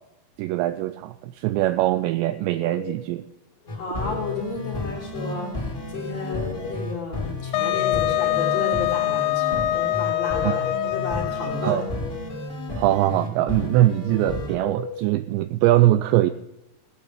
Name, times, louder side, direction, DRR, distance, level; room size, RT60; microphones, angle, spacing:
voice 1, 0.4-3.2 10.4-10.6 11.6-11.8 12.8-16.3, right 15 dB, 85° right, 12 dB, 2.5 m, -22 dB
sound 1, 2.3-3.1 3.6-4.5 6.1-7.1 7.4-8.5 10.0-11.0 11.4-12.4 14.0-15.1, left 4 dB, 65° left, 3.0 m, -39 dB
voice 2, 3.7-11.8, left 3 dB, 40° left, -2 dB, 3.9 m, -32 dB
sound 2, 3.7-14.5, left 2 dB, 15° left, 3.1 m, -32 dB
Wind instrument woodwind instrument, 7.5-11.9, left 15 dB, 85° left, 2.3 m, -24 dB
16.5 x 8.6 x 5.0 m, 0.91 s
omnidirectional pair, 5.4 m